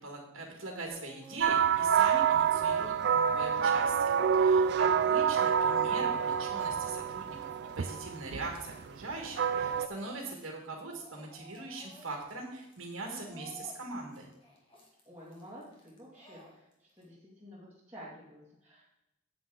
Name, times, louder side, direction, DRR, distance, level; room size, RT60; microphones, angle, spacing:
voice 1, 0.0-7.5 7.7-14.3, right 3 dB, 70° right, 0 dB, 1.9 m, -41 dB
Speech / Crying sobbing, 0.9-1.9 2.2-8.8 9.1-10.5 10.8-17.0, left 1 dB, 25° left, 2.2 m, -55 dB
sound 1, 1.4-9.9, right 7 dB, 50° right, 0.4 m, -27 dB
voice 2, 15.0-19.0, equal, 10° right, -9 dB, 2.4 m, -51 dB
9.4 x 8.7 x 3.9 m, 0.86 s
head